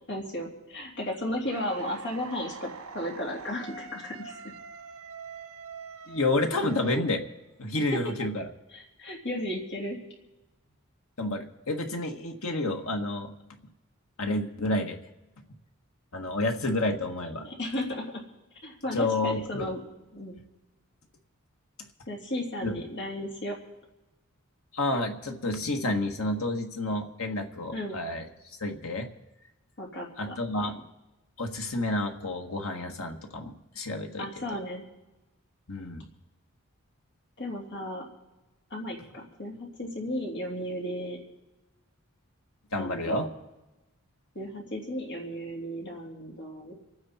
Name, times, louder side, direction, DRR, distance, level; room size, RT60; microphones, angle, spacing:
voice 1, 0.1-4.4 7.9-8.0 8.7-10.0 17.4-18.2 18.6-19.8 20.1-20.4 22.1-23.6 27.7-28.0 29.8-30.3 30.6-30.7 34.2-34.8 37.4-38.1 38.7-41.2 42.7-43.2 44.3-46.7, left 1 dB, 55° left, -1 dB, 3.2 m, -34 dB
sound 1, 1.4-7.5, right 4 dB, 85° right, 1.3 m, -44 dB
voice 2, 6.1-7.2 7.6-8.5 11.2-13.3 14.2-15.0 16.1-17.5 18.9-19.7 22.6-22.7 24.7-28.2 28.6-29.1 30.2-30.8 31.4-34.3 35.7-36.0 42.7-43.3, left 2 dB, 75° left, 4 dB, 1.7 m, -29 dB
27.5 x 9.7 x 4.3 m, 1.0 s
head